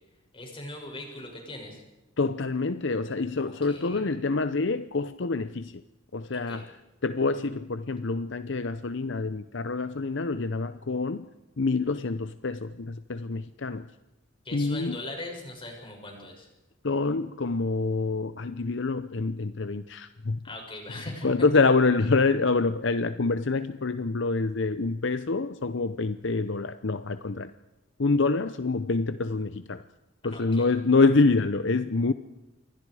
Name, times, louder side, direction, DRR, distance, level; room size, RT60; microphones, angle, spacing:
voice 1, 0.3-1.8 3.4-4.1 6.3-6.6 14.4-16.5 20.4-21.3 30.3-30.7, left 2 dB, 25° left, 1 dB, 7.3 m, -40 dB
voice 2, 2.2-5.8 6.1-6.8 7.0-11.3 11.6-13.9 14.5-15.0 16.8-20.4 21.2-27.5 28.0-29.8 30.2-32.1, left 3 dB, 65° left, 12 dB, 0.8 m, -26 dB
28.0 x 23.0 x 4.9 m, 1.0 s
head